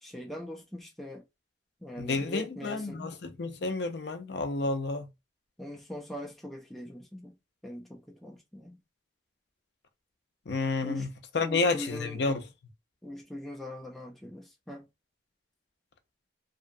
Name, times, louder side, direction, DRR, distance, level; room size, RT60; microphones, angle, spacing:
voice 1, 0.0-1.2 1.8-3.2 5.6-7.4 7.6-8.8 10.8-11.1 11.4-12.2 13.0-14.9, left 1 dB, ahead, 0.4 m, -41 dB
voice 2, 2.0-5.1 10.5-12.4, left 3 dB, 65° left, 0.5 m, -30 dB
2.7 x 2.2 x 2.6 m
head